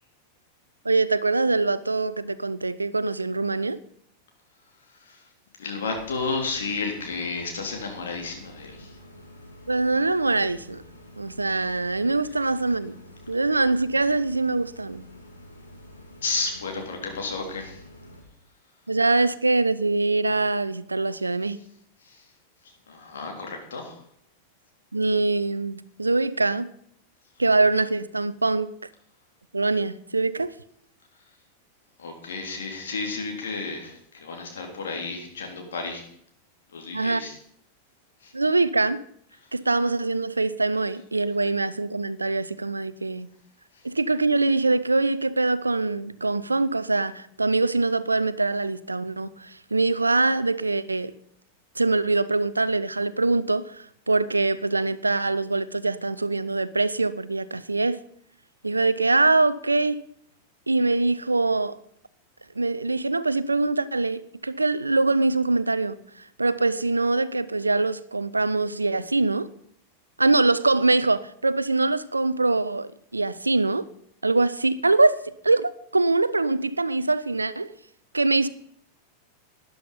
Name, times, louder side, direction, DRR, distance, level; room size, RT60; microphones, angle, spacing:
voice 1, 0.8-3.8 9.7-10.8 11.2-13.0 13.3-15.0 18.9-21.6 24.9-26.7 27.4-28.7 29.5-30.5 36.9-37.2 38.3-39.0 39.5-43.3 43.8-51.1 51.8-58.0 58.6-60.0 60.7-61.8 62.6-66.0 66.4-69.5 70.2-73.9 74.2-77.7 78.1-78.5, right 3 dB, 80° right, 0.5 m, -23 dB
voice 2, 5.6-9.0 16.2-17.8 22.0-22.2 22.9-23.9 32.0-36.0 36.7-37.4 38.2-38.3, left 4 dB, 65° left, 3.4 m, -32 dB
sound 1, 5.9-18.2, equal, 80° left, 2.3 m, -47 dB
12.5 x 10.5 x 5.5 m
figure-of-eight pair, 90°, 0 cm